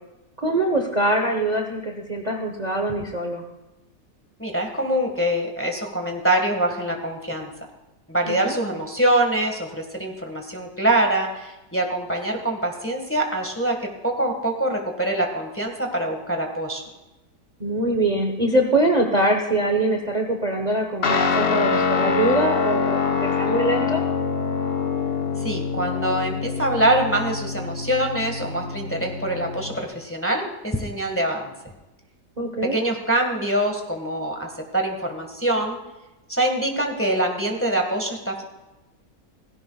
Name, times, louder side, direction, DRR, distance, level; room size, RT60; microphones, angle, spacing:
voice 1, 0.4-3.4 8.3-8.5 17.6-24.0 32.4-32.7, right 1 dB, 30° right, 2 dB, 1.1 m, -23 dB
voice 2, 4.4-7.5 8.1-16.8 25.4-31.5 32.6-35.8 36.3-38.4, right 1 dB, 10° left, 2 dB, 1.5 m, -24 dB
Guitar, 21.0-29.8, left 5 dB, 45° left, 0.9 m, -25 dB
17.0 x 16.0 x 2.3 m, 1.0 s
omnidirectional pair, 1.7 m